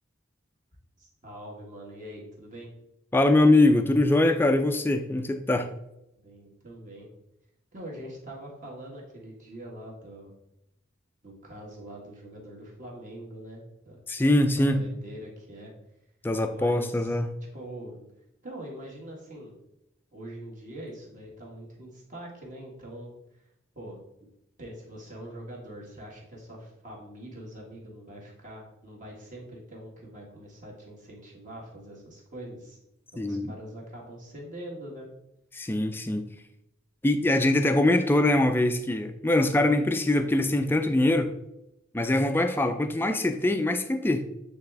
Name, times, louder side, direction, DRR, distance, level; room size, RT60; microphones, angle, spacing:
voice 1, 1.0-2.7 6.1-7.1 7.7-10.3 11.2-14.0 14.5-15.7 16.5-17.2 17.5-18.0 18.4-19.5 20.1-23.4 23.7-24.0 24.6-32.8 33.1-35.1, right 1 dB, 40° right, -2 dB, 1.6 m, -43 dB
voice 2, 3.1-5.7 14.1-14.8 16.2-17.3 33.2-33.5 35.5-36.3 37.0-41.3 41.9-44.2, left 1 dB, 10° left, 8 dB, 0.4 m, -23 dB
8.0 x 3.5 x 3.4 m, 0.85 s
head